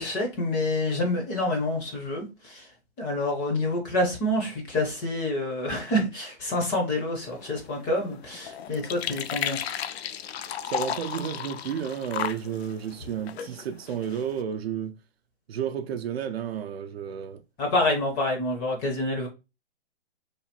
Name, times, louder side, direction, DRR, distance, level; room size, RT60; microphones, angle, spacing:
voice 1, 0.0-2.7 3.0-9.6 17.6-19.3, left 1 dB, 15° left, 0.5 m, -27 dB
sound 1, 7.2-14.4, left 9 dB, 70° left, 0.4 m, -35 dB
voice 2, 10.7-15.0 15.5-17.4, right 8 dB, 65° right, 0.5 m, -32 dB
3.3 x 2.2 x 2.8 m
hypercardioid pair, 145°, 33 cm